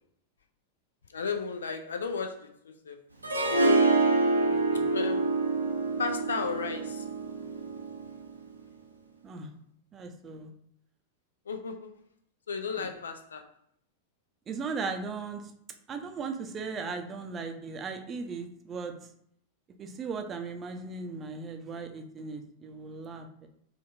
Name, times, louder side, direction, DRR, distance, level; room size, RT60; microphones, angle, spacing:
voice 1, 1.1-3.0 4.9-5.3 6.0-7.1 11.5-11.9 12.5-13.4, left 5 dB, 70° left, 6 dB, 0.5 m, -34 dB
Harp, 3.2-8.3, right 3 dB, 80° right, 0.5 m, -26 dB
voice 2, 4.5-5.0 9.2-9.5 9.9-10.5 12.8-12.9 14.5-15.5 15.9-19.1 19.8-23.5, right 4 dB, 25° right, 5 dB, 0.5 m, -37 dB
4.8 x 2.4 x 2.7 m, 0.67 s
figure-of-eight pair, 90°, 0 cm